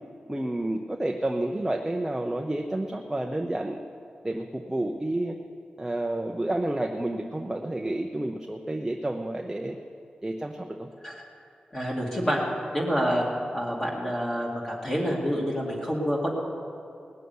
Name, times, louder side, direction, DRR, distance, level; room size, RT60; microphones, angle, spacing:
voice 1, 0.3-3.8 4.2-5.3 5.8-9.8 10.2-10.9, right 1 dB, 10° right, 2 dB, 0.7 m, -30 dB
voice 2, 11.7-12.4 12.7-13.2 13.5-16.3, equal, 25° left, -4 dB, 2.4 m, -27 dB
18.5 x 7.0 x 9.5 m, 2.5 s
wide cardioid pair, 145°, 3 cm